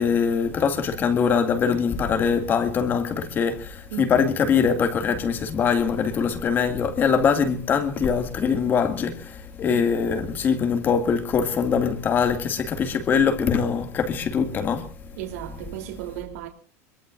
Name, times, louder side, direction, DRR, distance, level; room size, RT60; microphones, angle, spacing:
voice 1, 0.0-14.9, left 6 dB, 25° left, 2.1 m, -23 dB
voice 2, 15.2-16.5, right 13 dB, 70° right, 3.2 m, -35 dB
25.5 x 23.0 x 2.5 m
supercardioid pair, 165°, 8 cm